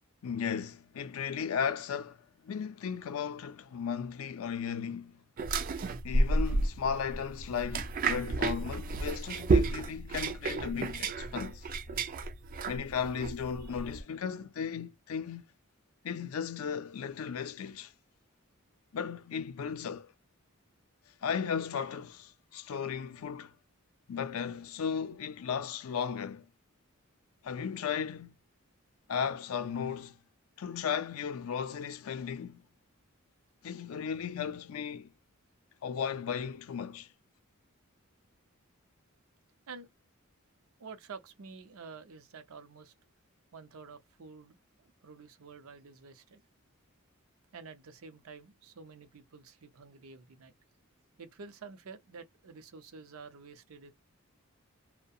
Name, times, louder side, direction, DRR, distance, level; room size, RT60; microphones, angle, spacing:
voice 1, 0.2-2.2 2.4-5.2 6.0-11.7 12.6-15.5 16.0-17.9 18.9-20.1 21.2-23.5 24.1-26.5 27.4-28.4 29.1-30.2 30.6-32.6 33.6-35.1 35.8-37.1, left 7 dB, 85° left, 0.4 m, -35 dB
sound 1, 5.4-14.0, right 3 dB, 40° right, 0.4 m, -31 dB
voice 2, 40.8-42.9 43.5-46.4 47.5-50.5 51.2-53.9, right 5 dB, 85° right, 0.6 m, -49 dB
2.7 x 2.1 x 2.3 m
head